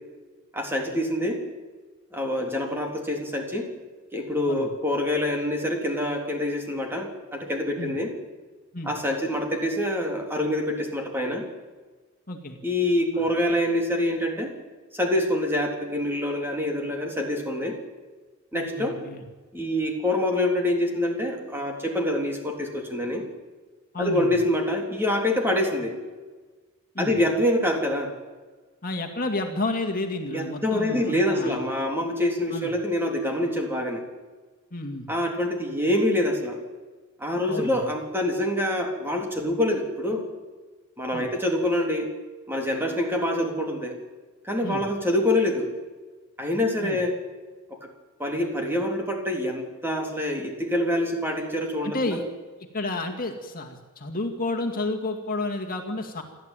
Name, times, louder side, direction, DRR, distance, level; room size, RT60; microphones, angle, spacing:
voice 1, 0.5-1.4 2.1-3.7 4.1-8.1 8.8-11.4 12.6-14.5 14.9-17.8 18.5-18.9 19.5-23.2 24.0-26.0 27.0-28.1 30.3-34.0 35.1-36.6 37.2-40.3 41.0-42.1 42.5-44.0 44.4-45.7 46.4-47.2 47.7-47.8 48.2-52.2, left 1 dB, 10° right, 2 dB, 3.3 m, -26 dB
voice 2, 12.3-12.6 13.1-13.3 18.5-19.2 23.9-24.3 26.9-27.2 28.8-31.6 32.5-32.7 34.7-35.1 37.5-37.8 41.1-41.3 44.6-44.8 46.8-47.0 51.8-52.2 52.7-56.2, left 2 dB, 45° left, 4 dB, 2.3 m, -31 dB
28.5 x 12.0 x 9.1 m, 1.3 s
head